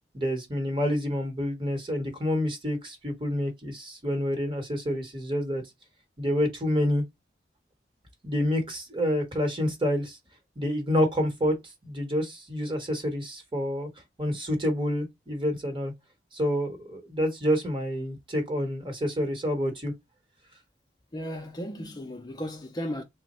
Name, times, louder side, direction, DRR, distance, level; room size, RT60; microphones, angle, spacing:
voice 1, 0.1-5.6 6.2-7.0 8.2-10.2 10.6-11.6 11.8-13.9 14.2-15.9 16.3-19.9, equal, 30° right, 1.0 m, -28 dB
voice 2, 21.1-23.0, equal, 20° left, 0.4 m, -35 dB
3.4 x 2.0 x 4.1 m
head